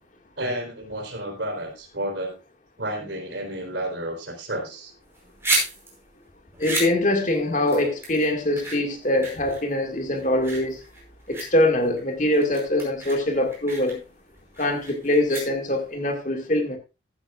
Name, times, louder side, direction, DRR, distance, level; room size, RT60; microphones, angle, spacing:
voice 1, 0.4-2.4 2.8-4.9, right 1 dB, 65° right, 3.9 m, -31 dB
sound 1, 5.0-15.9, right 2 dB, 15° right, 5.1 m, -33 dB
voice 2, 6.6-10.8 11.3-14.0 14.6-16.8, left 1 dB, 40° left, 2.0 m, -23 dB
15.0 x 10.0 x 2.4 m
head